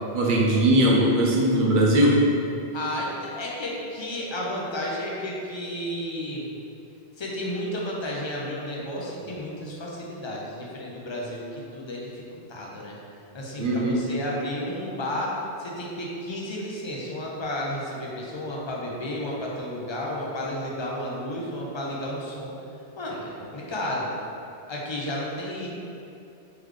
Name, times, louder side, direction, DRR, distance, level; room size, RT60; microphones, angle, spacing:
voice 1, 0.1-2.2 13.6-14.0, right 1 dB, 55° right, -4 dB, 0.8 m, -20 dB
voice 2, 2.7-6.5 7.2-12.2 12.5-13.0 13.3-22.5 23.0-24.1 24.7-25.7, left 1 dB, 35° left, -4 dB, 0.5 m, -32 dB
3.8 x 3.3 x 3.1 m, 2.7 s
omnidirectional pair, 1.1 m